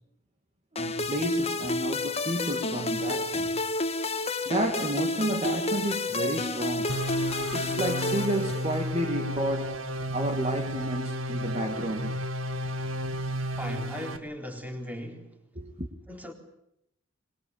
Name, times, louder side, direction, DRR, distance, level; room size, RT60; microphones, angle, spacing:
voice 1, 0.7-3.6 4.5-7.0 7.5-9.7 10.1-12.1 15.6-15.9, right 1 dB, 35° right, 2.2 m, -31 dB
sound 1, 0.8-9.0, left 2 dB, 30° left, 1.5 m, -30 dB
sound 2, 6.9-14.2, equal, 85° right, 2.0 m, -32 dB
voice 2, 13.6-15.3 16.1-16.3, equal, 10° right, 3.9 m, -38 dB
23.5 x 22.5 x 8.7 m
head